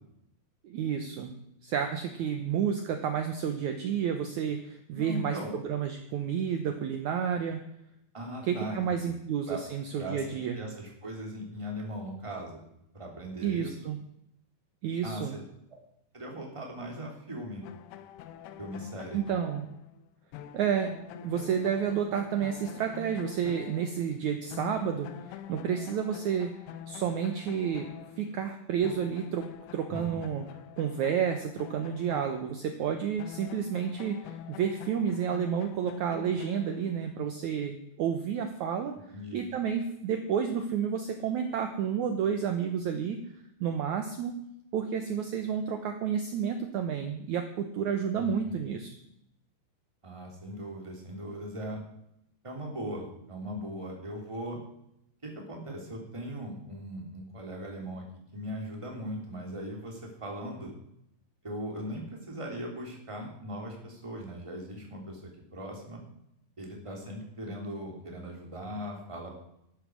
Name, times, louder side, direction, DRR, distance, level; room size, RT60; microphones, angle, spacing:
voice 1, 0.6-1.4 1.6-7.6 8.4-10.6 13.4-14.0 14.8-15.4 19.1-19.7 20.5-20.9 21.2-26.5 26.9-27.9 28.2-29.5 29.7-30.4 30.8-38.9 39.3-43.2 43.6-44.4 44.7-48.9, right 8 dB, 75° right, 5 dB, 1.8 m, -30 dB
voice 2, 4.9-5.5 8.1-9.1 9.5-9.6 9.9-12.6 12.9-13.7 15.0-15.3 16.1-17.6 18.6-19.2 29.9-30.3 39.1-39.4 48.2-48.6 50.0-51.8 52.4-54.6 55.2-58.0 58.3-60.7 61.4-65.2 65.5-66.0 66.6-69.3, equal, 10° right, 0 dB, 2.6 m, -39 dB
sound 1, 17.6-24.3 24.5-32.7 33.2-37.1, left 9 dB, 80° left, 2.6 m, -45 dB
12.5 x 11.5 x 6.4 m, 0.77 s
omnidirectional pair, 4.8 m